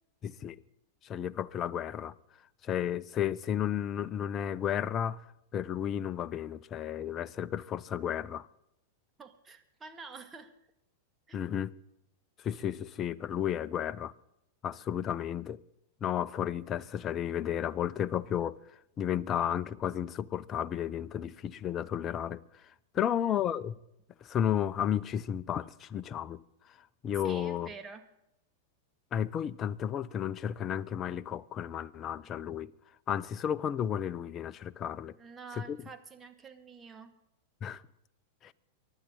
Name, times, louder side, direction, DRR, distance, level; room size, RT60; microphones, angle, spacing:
voice 1, 0.2-0.6 1.0-2.2 2.6-5.3 5.5-8.5 11.3-11.8 12.4-14.1 14.6-15.6 16.0-18.6 19.0-22.6 22.9-23.8 24.2-26.4 26.7-26.8 27.0-27.7 29.1-32.7 33.1-35.2 35.7-35.8 37.6-37.8 38.4-38.5, left 9 dB, 30° left, 0.7 m, -33 dB
voice 2, 9.2-10.5 11.3-11.4 22.9-23.5 27.2-28.1 35.2-37.1, right 4 dB, 20° right, 1.9 m, -48 dB
24.0 x 12.0 x 3.8 m
hypercardioid pair, 100°, 0 cm